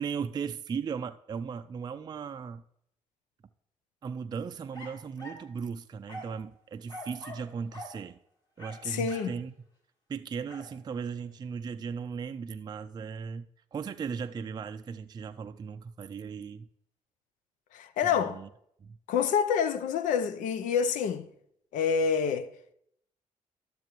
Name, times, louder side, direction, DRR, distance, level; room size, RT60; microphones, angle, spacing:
voice 1, 0.0-2.6 4.0-8.2 8.6-9.5 10.1-16.7 18.0-18.5 18.8-19.0, right 6 dB, 35° right, 0.4 m, -37 dB
sound 1, 4.7-5.5 6.1-6.4 6.9-7.5 7.7-8.0 8.6-9.4 10.5-10.7, equal, 35° left, 2.8 m, -44 dB
voice 2, 8.8-9.3 17.7-18.4 19.1-21.3 21.7-22.5, left 7 dB, 80° left, 0.6 m, -27 dB
12.5 x 6.7 x 3.1 m
supercardioid pair, 70°, 13 cm